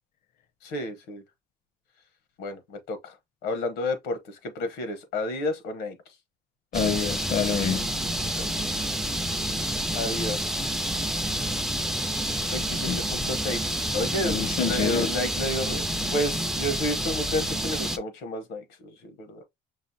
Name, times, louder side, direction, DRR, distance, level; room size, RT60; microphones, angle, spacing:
voice 1, 0.6-1.2 2.4-3.1 3.4-6.0 8.4-8.6 9.9-10.7 12.4-15.9 16.1-19.4, left 1 dB, 90° left, 1.0 m, -31 dB
voice 2, 6.7-7.9 12.9-13.0 14.2-15.1, left 7 dB, 55° left, 0.6 m, -27 dB
sound 1, 6.7-18.0, equal, ahead, 0.4 m, -29 dB
5.4 x 2.5 x 2.7 m
cardioid pair, 110°, 17 cm